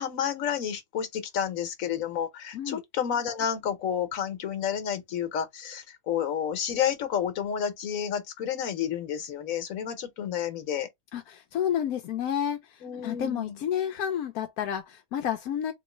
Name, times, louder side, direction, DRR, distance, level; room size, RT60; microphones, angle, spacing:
voice 1, 0.0-10.9 12.8-13.6, left 8 dB, 65° left, 1.3 m, -30 dB
voice 2, 11.1-15.7, left 9 dB, 85° left, 1.1 m, -30 dB
3.8 x 3.0 x 3.1 m
omnidirectional pair, 1.5 m